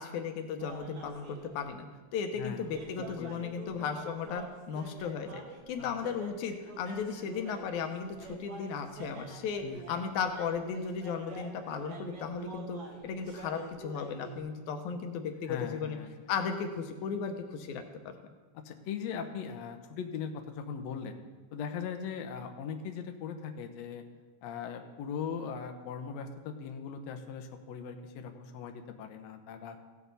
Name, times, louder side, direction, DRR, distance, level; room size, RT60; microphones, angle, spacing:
voice 1, 0.0-1.8 2.1-5.4 5.7-16.0 16.3-18.1, left 6 dB, 90° left, 6 dB, 2.3 m, -35 dB
sound 1, 0.6-1.7 2.6-14.4, right 3 dB, 85° right, 3.2 m, -47 dB
voice 2, 3.0-3.9 5.8-5.9 9.6-10.0 15.4-16.1 18.7-21.2 21.5-24.0 24.4-29.8, left 6 dB, 75° left, 5 dB, 1.9 m, -40 dB
16.0 x 8.1 x 4.1 m, 1.3 s
omnidirectional pair, 3.4 m